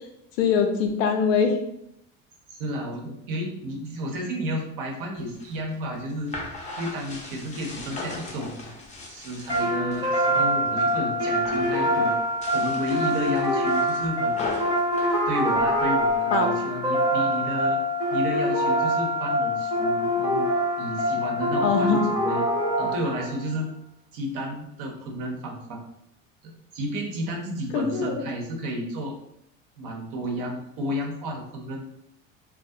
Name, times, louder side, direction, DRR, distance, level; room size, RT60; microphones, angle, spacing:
voice 1, 0.4-1.6 16.3-16.5 21.6-22.0 27.7-28.2, left 6 dB, 85° left, 5 dB, 0.5 m, -22 dB
voice 2, 2.5-6.3 6.8-8.7 9.1-12.2 12.5-14.5 15.3-17.8 18.1-20.4 20.8-22.5 22.8-23.6 24.1-25.8 26.4-29.1 29.8-31.8, equal, 55° right, 1 dB, 0.8 m, -32 dB
sound 1, 5.2-10.1 10.5-11.0 11.3-11.8 12.3-16.2, left 2 dB, 20° left, 0.5 m, -38 dB
sound 2, 9.5-23.4, equal, 10° right, 0.8 m, -24 dB
2.3 x 2.0 x 2.6 m, 0.77 s
hypercardioid pair, 85°, 38 cm